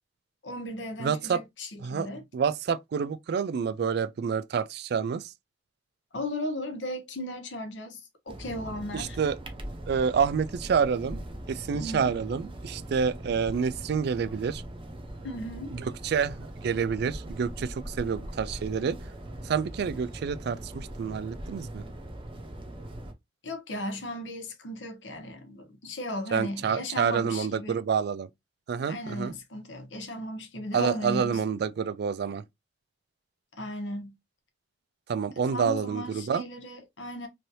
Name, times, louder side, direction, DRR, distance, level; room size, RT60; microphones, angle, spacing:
voice 1, 0.4-2.2 6.1-8.0 8.3-9.2 11.7-12.1 15.2-15.7 23.4-27.8 28.8-31.4 33.6-34.1 35.5-37.3, left 1 dB, 90° left, 1.0 m, -36 dB
voice 2, 1.0-1.4 1.8-5.3 8.9-9.4 9.9-11.2 11.5-14.6 15.7-19.0 19.4-21.8 26.3-28.3 28.7-29.3 30.7-32.4 35.1-36.4, right 6 dB, 60° right, 0.3 m, -28 dB
sound 1, 8.3-23.1, right 1 dB, 30° right, 0.7 m, -40 dB
3.2 x 2.7 x 2.7 m
head